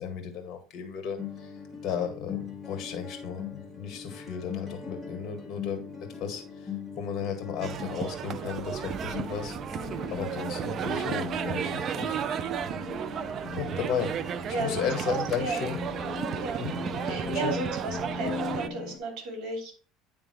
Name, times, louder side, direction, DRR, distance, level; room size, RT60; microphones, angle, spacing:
voice 1, 0.0-1.5 1.8-5.9 6.2-6.4 7.0-9.5 10.1-12.2 13.6-14.1 14.4-15.8 16.6-16.8 17.1-17.6, left 7 dB, 45° left, 4 dB, 1.9 m, -34 dB
sound 1, 1.2-19.0, left 5 dB, 10° left, 1.6 m, -39 dB
sound 2, 7.6-18.7, right 8 dB, 40° right, 0.4 m, -33 dB
voice 2, 14.5-15.6 16.4-16.6 17.0-19.7, right 3 dB, 60° right, 2 dB, 2.9 m, -34 dB
9.7 x 3.5 x 3.2 m, 0.39 s
cardioid pair, 135°, 0 cm